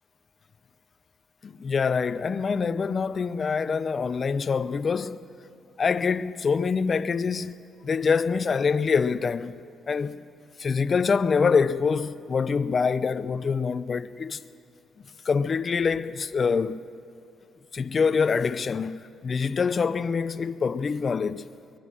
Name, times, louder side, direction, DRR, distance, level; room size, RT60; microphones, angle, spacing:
voice 1, 1.4-5.3 5.8-7.6 7.8-9.5 9.9-10.2 10.6-14.4 15.2-16.8 17.7-18.9 19.2-21.4, left 5 dB, 40° left, 0.6 m, -25 dB
23.5 x 20.5 x 6.2 m
cardioid pair, 90°, 0 cm